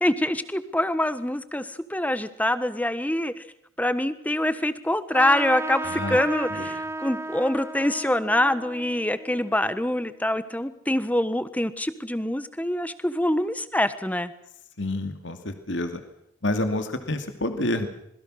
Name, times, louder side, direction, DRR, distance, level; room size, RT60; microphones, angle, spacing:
voice 1, 0.0-3.4 3.8-14.3, left 1 dB, 5° left, 13 dB, 1.3 m, -25 dB
Trumpet, 5.1-10.1, right 2 dB, 15° right, 0.9 m, -34 dB
voice 2, 14.8-16.0 16.4-17.9, left 1 dB, 60° left, 7 dB, 2.6 m, -28 dB
27.0 x 21.5 x 6.5 m, 0.75 s
head